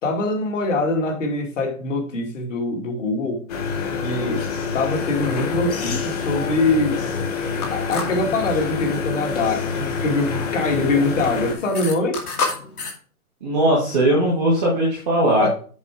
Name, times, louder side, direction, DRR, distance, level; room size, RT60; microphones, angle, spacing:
voice 1, 0.0-3.4 4.0-4.5 4.7-7.0 7.7-12.2 15.4-15.5, left 2 dB, 55° left, 2.3 m, -23 dB
sound 1, 3.5-11.5, left 5 dB, 25° left, 1.1 m, -26 dB
sound 2, 4.9-12.9, left 4 dB, 75° left, 2.5 m, -34 dB
voice 2, 13.4-15.5, right 1 dB, 5° left, 0.5 m, -19 dB
7.2 x 5.0 x 4.8 m
hypercardioid pair, 155°, 45 cm